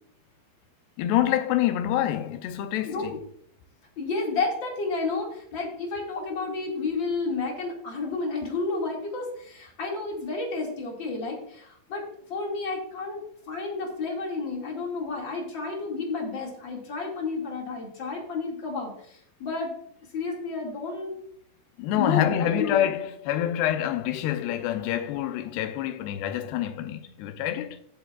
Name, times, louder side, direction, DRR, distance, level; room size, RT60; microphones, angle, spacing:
voice 1, 1.0-3.2 21.8-27.8, left 11 dB, 80° left, 2.7 m, -26 dB
voice 2, 2.8-3.2 4.0-19.7 20.1-21.2 21.9-22.9, left 3 dB, 35° left, 2.3 m, -31 dB
17.0 x 8.1 x 2.4 m
omnidirectional pair, 4.8 m